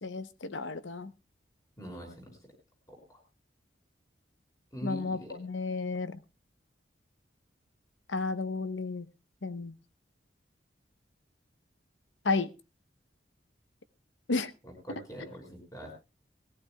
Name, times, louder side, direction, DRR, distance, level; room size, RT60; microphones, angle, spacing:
voice 1, 0.0-1.1 4.8-6.2 8.1-9.0 9.4-9.7 12.2-12.5 14.3-14.5, left 3 dB, 90° left, 0.9 m, -32 dB
voice 2, 1.8-2.5 2.9-3.2 4.7-5.4 14.6-16.0, right 1 dB, 20° left, 5.7 m, -43 dB
20.5 x 15.0 x 2.3 m
head